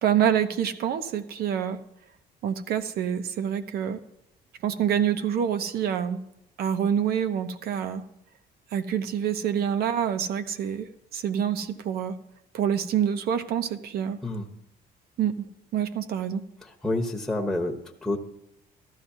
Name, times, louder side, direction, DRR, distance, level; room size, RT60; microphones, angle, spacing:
voice 1, 0.0-1.8 2.4-4.0 4.6-6.2 6.6-8.0 8.7-12.2 12.5-14.2 15.2-15.3 15.7-16.4, right 9 dB, 65° right, 10 dB, 0.9 m, -26 dB
voice 2, 16.6-18.2, left 2 dB, ahead, 0 dB, 1.0 m, -29 dB
14.0 x 12.5 x 2.7 m, 0.85 s
cardioid pair, 110°, 17 cm